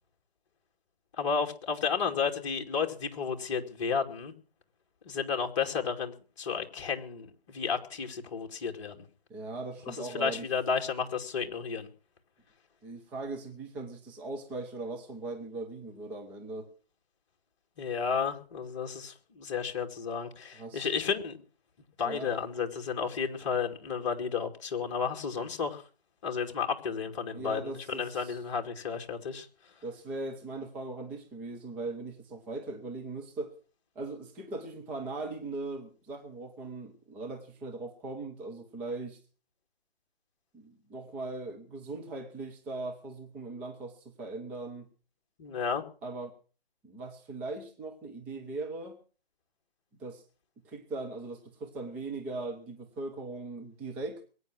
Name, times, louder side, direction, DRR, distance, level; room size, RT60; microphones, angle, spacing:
voice 1, 1.2-4.3 5.0-9.0 9.9-11.9 17.8-21.4 22.0-25.8 26.2-29.5 45.4-45.8, left 6 dB, 30° left, 4 dB, 2.5 m, -32 dB
voice 2, 9.3-10.5 12.8-16.7 20.5-20.9 22.0-22.3 27.3-28.4 29.8-33.6 33.9-39.2 40.5-44.9 46.0-46.3 46.8-49.0 50.0-50.2 50.6-54.3, right 2 dB, 5° right, 3 dB, 0.7 m, -39 dB
22.0 x 9.6 x 6.2 m, 0.39 s
figure-of-eight pair, 155°, 30 cm